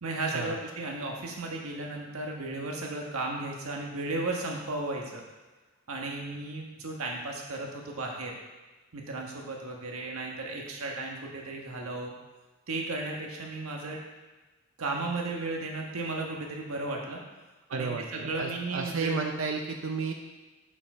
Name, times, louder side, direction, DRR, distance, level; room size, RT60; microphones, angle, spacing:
voice 1, 0.0-5.2 5.9-8.3 8.9-12.1 12.7-14.0 14.8-17.2 17.7-19.2, right 2 dB, 80° right, 0 dB, 1.4 m, -34 dB
voice 2, 17.7-20.1, right 4 dB, 65° right, 3 dB, 0.6 m, -32 dB
6.8 x 5.0 x 5.5 m, 1.2 s
head